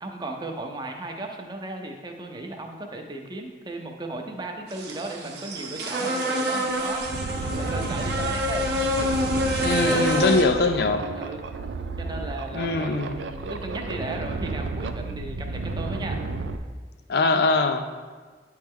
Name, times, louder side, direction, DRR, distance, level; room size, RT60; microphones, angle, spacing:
voice 1, 0.0-7.1 7.5-8.7 9.6-10.7 11.1-11.4 12.0-16.2, right 2 dB, 25° right, 2 dB, 0.6 m, -36 dB
sound 1, 4.7-10.4, equal, 60° right, 0.8 m, -27 dB
sound 2, 6.2-6.3 6.7-16.6, right 3 dB, 80° right, 0.4 m, -32 dB
voice 2, 9.6-11.0 12.5-13.2 17.1-17.8, left 3 dB, 60° left, 7 dB, 0.4 m, -22 dB
9.0 x 3.2 x 3.5 m, 1.4 s
head